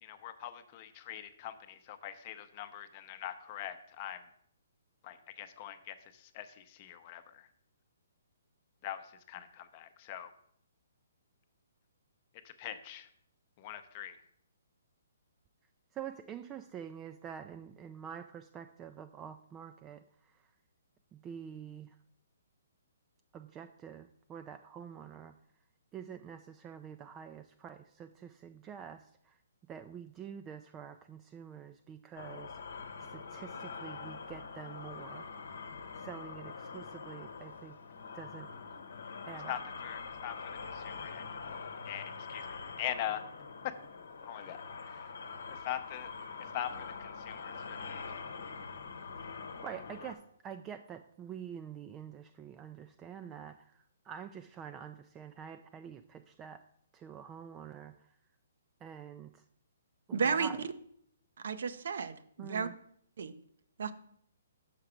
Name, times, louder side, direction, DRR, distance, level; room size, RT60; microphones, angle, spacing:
voice 1, 0.0-4.2 5.0-7.5 8.8-10.3 12.4-13.1 13.6-14.2 39.5-41.4 41.9-43.2 43.6-43.7 44.2-45.1 45.5-46.1 46.5-48.0, left 11 dB, 35° left, 10 dB, 0.7 m, -42 dB
voice 2, 15.9-20.5 21.1-22.0 23.3-25.4 25.9-29.4 29.7-32.6 33.0-35.3 35.9-37.8 38.1-38.5 39.3-39.6 49.1-56.6 56.9-58.2 58.8-59.4 60.1-60.6 62.4-62.7, right 8 dB, 20° right, 8 dB, 0.3 m, -47 dB
sound 1, 32.2-50.1, left 5 dB, 75° left, 0.9 m, -44 dB
voice 3, 60.1-60.5 61.4-62.7 63.2-63.3 63.8-63.9, right 6 dB, 65° right, 12 dB, 0.6 m, -33 dB
5.9 x 5.6 x 5.0 m, 0.67 s
hypercardioid pair, 140°, 0 cm